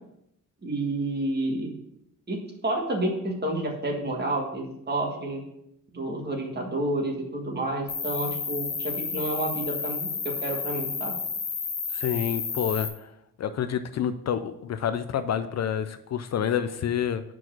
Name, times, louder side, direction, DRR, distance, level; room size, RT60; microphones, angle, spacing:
voice 1, 0.6-1.7 2.3-5.4 5.9-11.1, right 1 dB, 30° right, 1 dB, 1.6 m, -30 dB
Cricket, 7.9-12.9, left 5 dB, 85° left, 1.6 m, -31 dB
voice 2, 11.9-13.1 13.4-17.2, left 9 dB, 50° left, 11 dB, 0.4 m, -28 dB
6.1 x 4.6 x 6.4 m, 0.78 s
wide cardioid pair, 150°, 34 cm